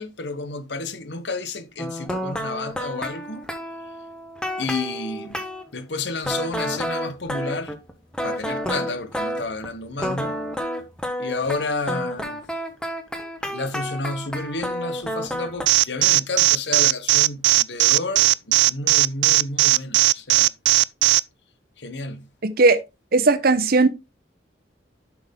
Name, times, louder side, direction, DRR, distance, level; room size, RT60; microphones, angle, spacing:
voice 1, 0.0-3.4 4.6-5.4 5.7-7.8 8.2-10.3 11.2-12.4 13.4-20.5 21.8-22.3, left 3 dB, 70° left, 1.2 m, -31 dB
sound 1, 1.8-5.7 6.2-9.7 10.0-15.7, equal, 5° left, 1.2 m, -30 dB
Alarm, 15.7-21.2, right 19 dB, 75° right, 0.3 m, -16 dB
voice 2, 22.4-22.8 23.1-23.9, right 3 dB, 55° right, 0.9 m, -17 dB
7.6 x 6.1 x 3.6 m
head